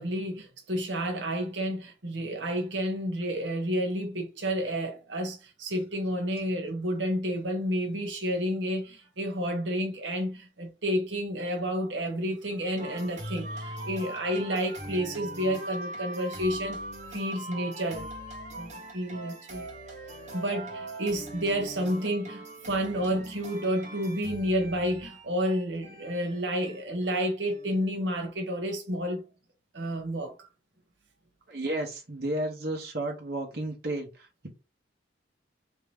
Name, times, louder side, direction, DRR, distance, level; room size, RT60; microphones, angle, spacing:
voice 1, 0.0-16.8 17.1-18.1 18.6-19.7 20.3-29.2 29.7-30.3, equal, 85° right, 1.2 m, -30 dB
sound 1, 12.8-27.9, right 1 dB, 40° right, 1.3 m, -41 dB
voice 2, 31.5-34.5, right 1 dB, 60° right, 1.1 m, -33 dB
3.4 x 2.9 x 3.5 m
head